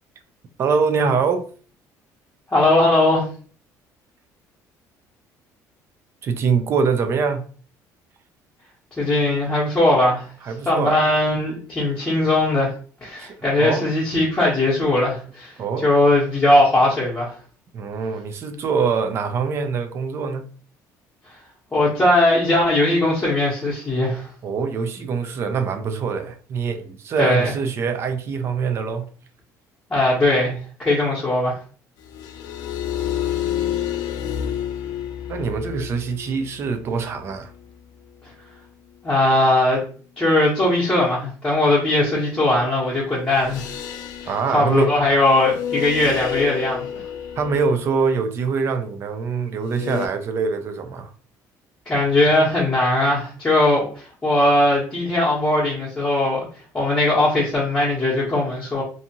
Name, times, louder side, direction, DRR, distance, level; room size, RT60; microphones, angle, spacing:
voice 1, 0.6-1.5 6.2-7.4 10.4-11.1 13.2-13.9 15.6-15.9 17.7-20.4 24.4-29.1 35.3-37.5 44.3-44.9 47.4-51.1, right 5 dB, 35° right, 0.4 m, -24 dB
voice 2, 2.5-3.2 9.0-10.3 10.7-12.7 13.0-15.5 15.8-17.3 21.7-24.3 27.2-27.5 29.9-31.6 39.0-39.8 40.2-43.7 44.5-47.0 51.9-56.5 56.7-58.8, left 1 dB, 15° left, 0.8 m, -19 dB
sound 1, 32.1-37.6 43.4-48.0 49.6-50.1, left 10 dB, 80° left, 0.4 m, -30 dB
2.6 x 2.4 x 2.8 m
cardioid pair, 160°, 7 cm